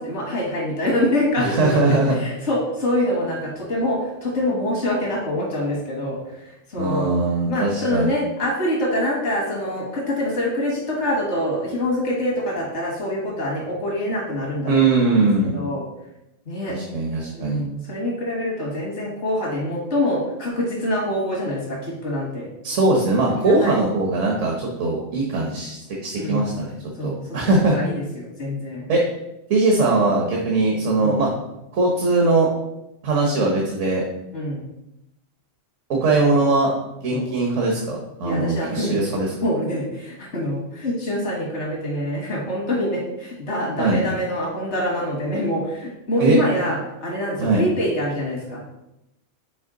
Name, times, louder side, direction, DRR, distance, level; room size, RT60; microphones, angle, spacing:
voice 1, 0.0-6.2 6.7-7.1 7.5-15.2 15.5-15.9 16.5-16.8 17.3-22.5 23.4-23.8 26.2-26.5 27.0-28.8 30.9-31.2 34.3-34.6 37.1-37.3 38.2-39.0 39.4-48.6, left 1 dB, 70° left, -3 dB, 1.9 m, -25 dB
voice 2, 1.4-2.2 6.8-8.1 14.7-15.6 16.7-17.6 22.6-27.7 28.9-29.0 29.5-31.3 31.7-32.5 33.0-34.0 35.9-36.7 37.0-39.3 43.8-44.0 46.2-46.4 47.4-47.6, right 2 dB, 90° right, -1 dB, 1.4 m, -20 dB
6.2 x 4.5 x 3.8 m, 0.88 s
omnidirectional pair, 1.2 m